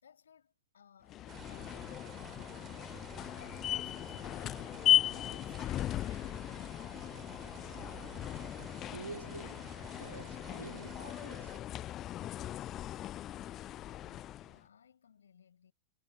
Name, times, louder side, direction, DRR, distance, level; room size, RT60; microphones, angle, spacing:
voice 1, 0.0-6.8 13.6-15.7, left 7 dB, 70° left, 6.5 m, -60 dB
sound 1, 1.1-14.6, left 13 dB, 30° left, 0.5 m, -36 dB
sound 2, 1.3-11.6, right 10 dB, 30° right, 6.2 m, -52 dB
voice 2, 8.9-12.0, right 4 dB, 80° right, 2.4 m, -49 dB
figure-of-eight pair, 90°, 0 cm